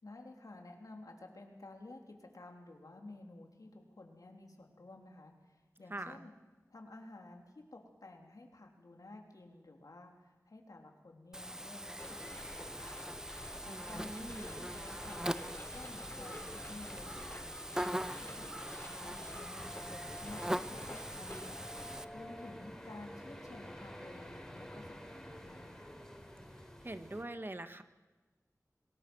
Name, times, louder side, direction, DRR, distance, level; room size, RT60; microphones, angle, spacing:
voice 1, 0.0-6.3 6.7-15.3 15.6-25.9, left 2 dB, 80° left, 2 dB, 3.4 m, -53 dB
voice 2, 5.9-6.3 13.6-14.7 26.8-27.8, right 1 dB, 35° right, 9 dB, 1.4 m, -44 dB
Buzz, 11.3-22.0, right 1 dB, 10° right, 0.6 m, -42 dB
sound 1, 12.0-22.0, left 1 dB, 35° left, 4.9 m, -49 dB
sound 2, 19.6-27.2, equal, 5° left, 5.3 m, -50 dB
26.5 x 19.5 x 6.2 m, 1.2 s
wide cardioid pair, 55°, 6 cm